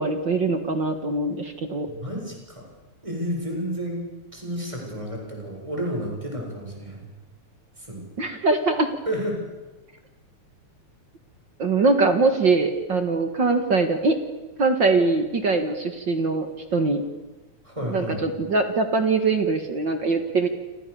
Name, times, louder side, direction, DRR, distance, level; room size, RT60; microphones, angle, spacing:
voice 1, 0.0-1.9 8.2-8.9 11.6-14.2 14.6-16.5 16.7-17.0 17.9-20.5, right 3 dB, 40° right, 7 dB, 2.2 m, -22 dB
voice 2, 1.9-2.7 3.0-4.0 4.3-7.0 7.8-8.0 9.1-9.3 17.6-18.2, equal, 10° right, 0 dB, 7.7 m, -31 dB
30.0 x 26.5 x 7.1 m, 1.2 s
omnidirectional pair, 3.5 m